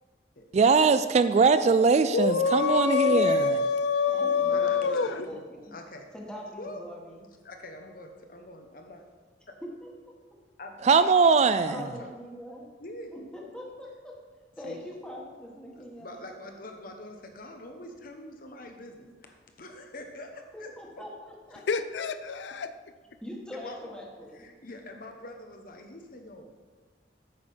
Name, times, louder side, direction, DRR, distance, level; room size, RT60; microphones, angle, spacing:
voice 1, 0.5-3.6 10.8-11.8, right 5 dB, 40° right, 12 dB, 0.3 m, -21 dB
voice 2, 2.1-5.5 21.7-22.7, left 5 dB, 90° left, 11 dB, 0.4 m, -26 dB
voice 3, 2.6-3.4 4.1-5.7 6.1-7.3 9.6-9.9 11.7-12.7 13.1-14.2 14.6-16.2 20.5-21.1 21.5-21.6 23.2-24.5, equal, 5° left, -2 dB, 1.6 m, -42 dB
voice 4, 4.4-5.2 5.7-6.1 6.6-6.9 7.4-9.0 9.5-9.6 10.6-10.8 11.6-12.1 12.8-13.1 14.6-14.8 15.7-21.1 21.5-21.6 23.5-23.8 24.3-26.5, left 1 dB, 55° left, 4 dB, 1.2 m, -45 dB
8.8 x 6.3 x 5.7 m, 1.4 s
head